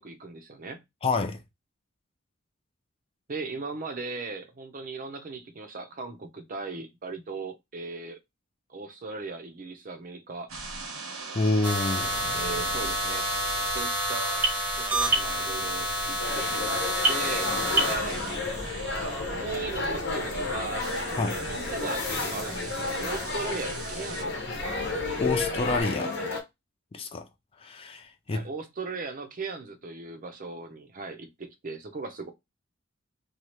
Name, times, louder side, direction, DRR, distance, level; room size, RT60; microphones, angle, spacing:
voice 1, 0.0-0.8 3.3-8.2 8.7-10.5 12.3-13.3 13.7-14.4 14.8-18.2 19.3-24.4 28.3-32.3, right 3 dB, 40° right, 0.5 m, -38 dB
voice 2, 1.0-1.4 11.3-12.3 21.2-21.4 25.2-26.1 26.9-27.3 27.6-28.5, left 3 dB, 30° left, 0.4 m, -28 dB
sound 1, 10.5-25.8, right 2 dB, 90° right, 1.0 m, -40 dB
sound 2, 11.6-18.0, right 1 dB, 10° right, 0.8 m, -28 dB
sound 3, 16.2-26.4, left 3 dB, 60° left, 0.9 m, -32 dB
2.9 x 2.3 x 3.0 m
head